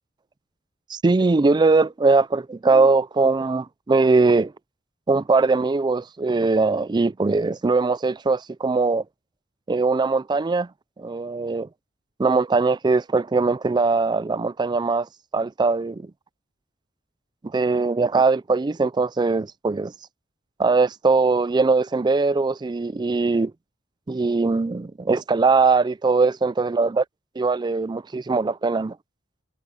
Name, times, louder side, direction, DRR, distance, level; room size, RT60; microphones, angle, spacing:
voice 1, 0.9-4.5 5.1-9.0 9.7-10.7 11.0-11.7 12.2-16.1 17.4-19.9 20.6-23.5 24.1-27.0 27.4-29.0, right 3 dB, 20° right, 0.4 m, -21 dB
head